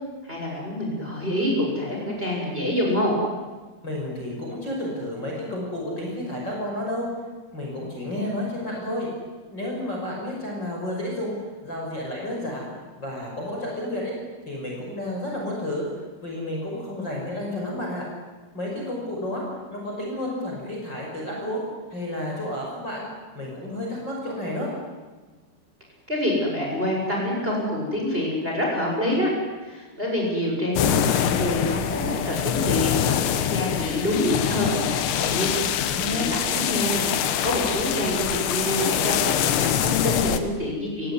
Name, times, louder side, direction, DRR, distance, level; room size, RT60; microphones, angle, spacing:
voice 1, 0.2-3.2 26.1-29.3 29.6-35.5 35.8-41.1, left 1 dB, 10° right, -1 dB, 7.0 m, -26 dB
voice 2, 3.8-7.1 7.5-9.1 9.5-11.3 11.6-12.7 13.0-14.1 14.5-15.9 16.2-18.1 18.5-19.4 19.7-21.6 21.9-23.1 23.3-24.7 35.9-36.3, left 1 dB, 25° left, -2 dB, 6.2 m, -31 dB
sound 1, 30.8-40.4, left 10 dB, 80° left, 3.6 m, -24 dB
29.0 x 17.5 x 9.8 m, 1.3 s
omnidirectional pair, 5.2 m